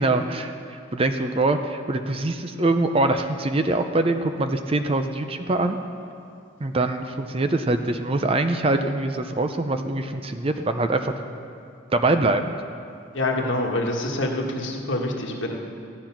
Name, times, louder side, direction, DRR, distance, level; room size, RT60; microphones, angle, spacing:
voice 1, 0.0-5.8 6.6-11.1 11.9-12.5, right 2 dB, 25° right, 7 dB, 0.5 m, -23 dB
voice 2, 13.1-15.6, left 1 dB, 60° left, 1 dB, 1.6 m, -26 dB
14.5 x 10.5 x 5.9 m, 2.5 s
head